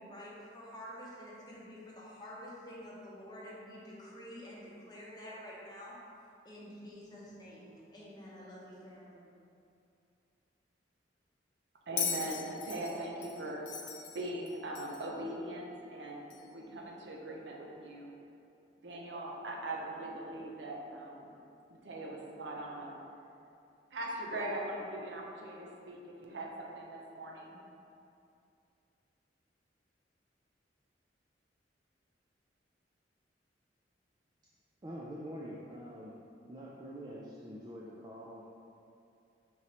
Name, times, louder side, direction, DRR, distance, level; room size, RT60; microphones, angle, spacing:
voice 1, 0.0-5.9 6.4-9.3, equal, 25° left, -6 dB, 0.8 m, -48 dB
voice 2, 11.9-13.7 14.1-16.3 16.5-18.1 18.8-21.3 21.7-22.9 23.9-27.5, right 1 dB, 75° right, -1 dB, 0.6 m, -40 dB
Bell, 12.0-15.2 16.3-16.4, left 6 dB, 90° left, 0.5 m, -38 dB
voice 3, 34.8-36.1 36.5-38.4, equal, 20° right, -5 dB, 0.3 m, -45 dB
5.2 x 3.0 x 2.8 m, 2.6 s
head